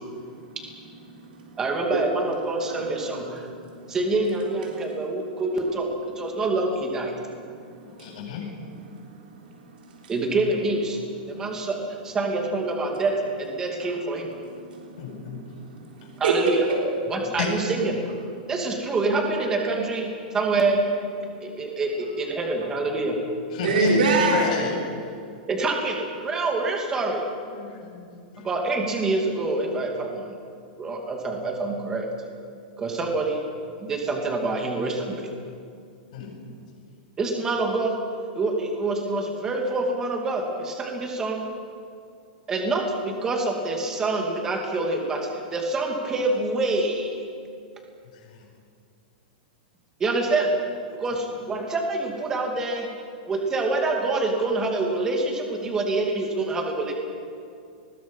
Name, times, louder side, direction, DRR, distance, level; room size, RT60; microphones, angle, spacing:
voice 1, 0.3-0.6 1.1-1.5 1.9-2.0 2.7-3.2 3.6-4.0 4.7-4.9 7.5-10.1 11.3-11.7 14.4-16.8 23.6-24.5, right 3 dB, 90° right, -2 dB, 3.8 m, -28 dB
voice 2, 1.6-3.5 3.9-5.9 6.2-7.1 10.1-11.0 11.3-11.8 12.0-14.3 16.2-16.6 17.1-18.0 18.5-20.1 20.3-20.8 21.4-23.2 25.5-27.2 28.4-30.2 30.8-32.1 32.8-33.4 33.8-35.3 37.2-37.9 38.4-41.5 42.5-47.2 50.0-50.6 50.9-52.9 53.2-56.9, right 2 dB, 10° right, 1 dB, 2.6 m, -26 dB
voice 3, 7.8-8.5 15.0-15.4 17.4-17.7 23.5-24.8 27.5-28.5 36.1-36.3 48.2-48.4 51.1-51.2, left 4 dB, 50° left, -1 dB, 7.6 m, -30 dB
30.0 x 21.0 x 5.7 m, 2.3 s
supercardioid pair, 175°, 5 cm